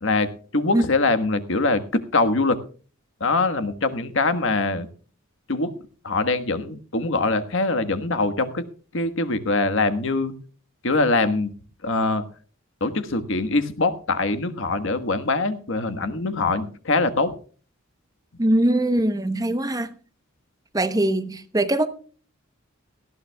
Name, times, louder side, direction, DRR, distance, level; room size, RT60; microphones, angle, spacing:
voice 1, 0.0-2.6 3.2-4.9 5.5-5.7 6.0-8.6 8.9-10.3 10.8-11.5 11.8-12.2 12.8-17.3, left 3 dB, 65° left, 1.4 m, -23 dB
voice 2, 18.4-19.9 20.7-21.9, right 1 dB, 20° right, 0.9 m, -21 dB
18.5 x 14.5 x 2.3 m
head